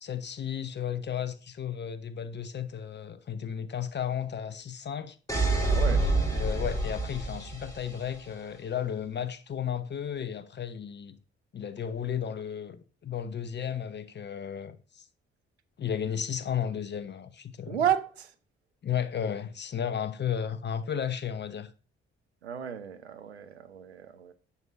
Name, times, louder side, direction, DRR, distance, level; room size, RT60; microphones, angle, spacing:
voice 1, 0.0-5.2 5.9-11.2 11.5-15.0 15.8-17.8 18.8-21.7, left 8 dB, 35° left, 0.9 m, -34 dB
sound 1, 5.3-8.2, right 2 dB, 10° left, 3.3 m, -27 dB
voice 2, 5.7-6.1 17.7-18.3 22.4-24.3, right 9 dB, 85° right, 0.5 m, -32 dB
9.3 x 6.9 x 2.6 m
figure-of-eight pair, 40°, 32 cm